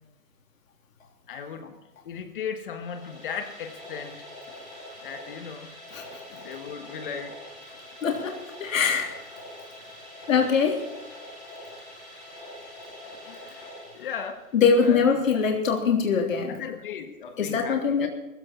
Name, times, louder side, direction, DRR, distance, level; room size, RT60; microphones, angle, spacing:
voice 1, 1.3-1.8 2.0-4.3 5.0-5.7 6.3-7.4 13.0-13.7 13.9-14.5 14.8-15.6 16.5-18.1, left 7 dB, 35° left, 7 dB, 1.5 m, -37 dB
sound 1, 2.7-14.6, left 1 dB, ahead, 0.5 m, -44 dB
voice 2, 8.0-8.3 8.6-9.1 10.3-10.8 14.5-16.6 17.4-18.1, left 6 dB, 65° left, 1 dB, 3.4 m, -22 dB
16.5 x 15.5 x 4.5 m, 1.0 s
hypercardioid pair, 160°, 43 cm